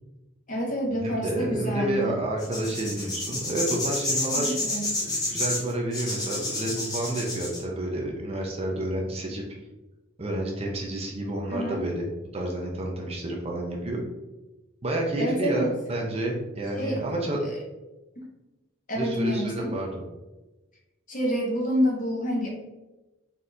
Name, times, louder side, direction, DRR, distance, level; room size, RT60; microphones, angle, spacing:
voice 1, 0.5-2.2 4.3-5.0 11.5-11.8 15.2-15.7 16.7-17.1 17.4-17.6 18.9-19.7 21.1-22.5, equal, 40° left, -2 dB, 1.1 m, -28 dB
voice 2, 1.0-4.6 5.3-9.5 10.2-12.1 12.3-14.0 14.8-17.4 19.0-20.0, right 1 dB, 30° right, -1 dB, 0.5 m, -29 dB
sound 1, 2.4-7.6, left 2 dB, 20° left, 0.8 m, -29 dB
4.2 x 3.6 x 2.6 m, 1.1 s
head